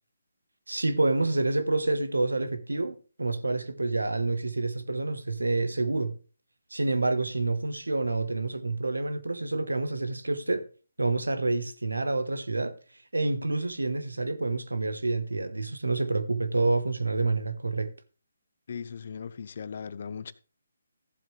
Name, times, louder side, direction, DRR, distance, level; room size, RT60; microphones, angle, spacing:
voice 1, 0.7-6.1 6.7-10.7 11.0-12.8 13.1-17.9, right 2 dB, 90° right, 1.2 m, -28 dB
voice 2, 18.7-20.3, left 6 dB, 55° left, 0.7 m, -38 dB
14.5 x 7.5 x 3.3 m
figure-of-eight pair, 145°, 0 cm